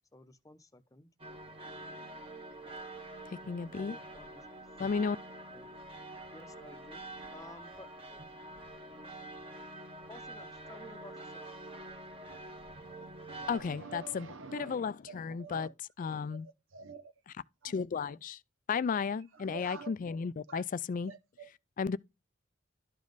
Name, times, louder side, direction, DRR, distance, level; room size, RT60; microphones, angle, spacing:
voice 1, 0.1-1.1 3.8-4.5 5.5-5.8 6.3-7.0 7.3-8.2 10.1-11.5, left 2 dB, 20° left, 0.7 m, -53 dB
sound 1, 1.2-13.6, right 2 dB, 30° right, 1.2 m, -46 dB
voice 2, 3.3-3.9 4.8-5.2 13.5-14.3 14.5-15.7 16.0-16.5 17.7-18.4 18.7-21.1 21.8-22.0, left 5 dB, 45° left, 0.4 m, -34 dB
voice 3, 12.7-15.7 16.3-17.0 17.6-17.7 18.0-18.2 18.7-19.1 19.3-19.9 20.5-20.6 21.1-21.5, right 5 dB, 90° right, 0.9 m, -48 dB
12.0 x 5.2 x 3.9 m
head